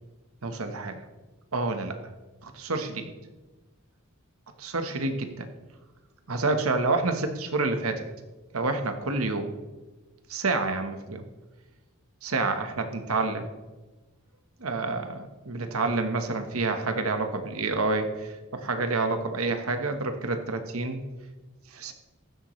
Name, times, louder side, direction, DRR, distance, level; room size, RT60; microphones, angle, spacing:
voice 1, 0.4-1.0 1.5-2.0 2.4-3.1 4.6-5.5 6.3-8.0 8.5-9.5 10.3-11.2 12.2-13.5 14.6-21.0 21.7-21.9, right 3 dB, 75° right, 6 dB, 1.2 m, -28 dB
15.0 x 12.0 x 3.2 m, 1.2 s
head